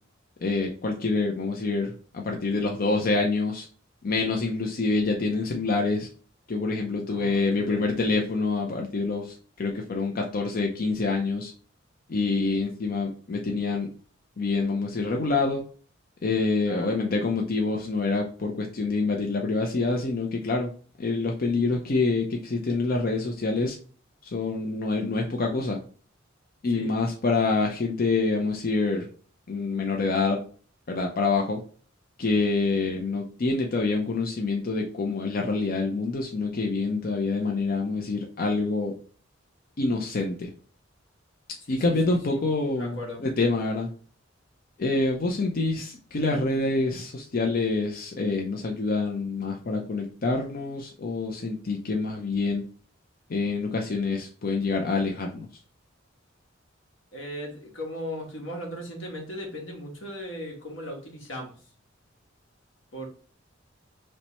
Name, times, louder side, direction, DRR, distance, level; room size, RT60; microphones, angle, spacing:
voice 1, 0.4-3.7 4.0-6.1 6.5-11.5 12.1-13.9 14.4-15.6 16.2-20.7 21.0-23.8 24.2-25.8 26.6-29.1 29.5-30.4 30.9-31.6 32.2-38.9 39.8-40.5 41.7-43.9 44.8-52.6 53.3-55.5, left 3 dB, 50° left, 1 dB, 0.5 m, -26 dB
voice 2, 7.1-7.8 16.6-17.0 26.7-26.9 41.7-42.4 42.8-43.2 57.1-61.5 62.9-63.1, equal, 75° left, 1 dB, 1.3 m, -37 dB
3.2 x 2.9 x 4.2 m, 0.42 s
head